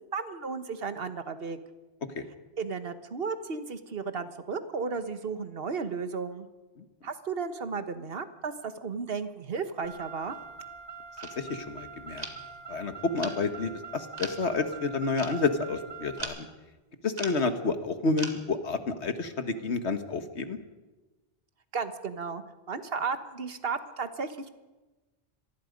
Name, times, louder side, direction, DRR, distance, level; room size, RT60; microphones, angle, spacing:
voice 1, 0.1-1.6 2.6-6.5 7.0-10.4 21.7-24.5, right 5 dB, 60° right, 10 dB, 1.5 m, -34 dB
Car, 9.8-16.2, right 5 dB, 20° right, 2.2 m, -44 dB
sound 1, 10.3-10.5 11.2-11.4 12.2-12.5 13.2-13.4 14.2-14.4 15.2-15.4 16.2-16.6 17.2-17.5 18.2-18.3, right 2 dB, 40° right, 2.1 m, -39 dB
voice 2, 11.4-12.3 12.7-16.5 17.0-20.6, left 3 dB, 85° left, 9 dB, 1.8 m, -30 dB
25.5 x 19.5 x 5.3 m, 1.2 s
omnidirectional pair, 1.1 m